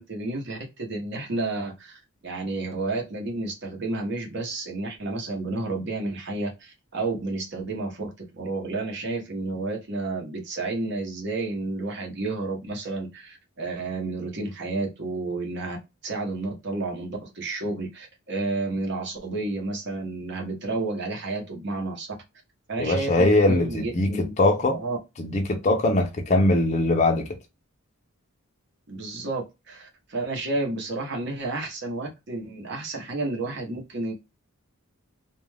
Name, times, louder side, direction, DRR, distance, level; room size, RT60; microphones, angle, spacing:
voice 1, 0.0-15.8 16.0-22.1 22.7-24.3 24.7-25.0 28.9-34.1, right 2 dB, 50° right, 0.9 m, -31 dB
voice 2, 22.8-24.8 25.2-27.3, left 2 dB, 30° left, 0.5 m, -21 dB
2.4 x 2.2 x 3.2 m
head